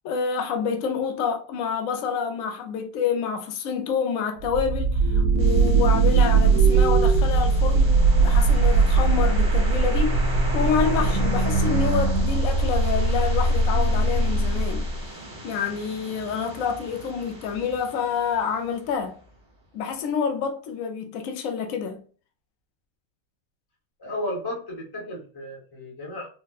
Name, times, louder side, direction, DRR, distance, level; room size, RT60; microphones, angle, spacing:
voice 1, 0.0-10.2 10.5-14.9 15.4-19.2 19.7-22.0, left 6 dB, 70° left, 0.9 m, -28 dB
sound 1, 4.4-15.0, right 3 dB, 85° right, 1.1 m, -20 dB
sound 2, 5.4-19.3, right 1 dB, 20° right, 0.7 m, -38 dB
voice 2, 24.0-26.3, left 1 dB, 20° left, 0.8 m, -33 dB
4.1 x 2.1 x 2.3 m
omnidirectional pair, 1.5 m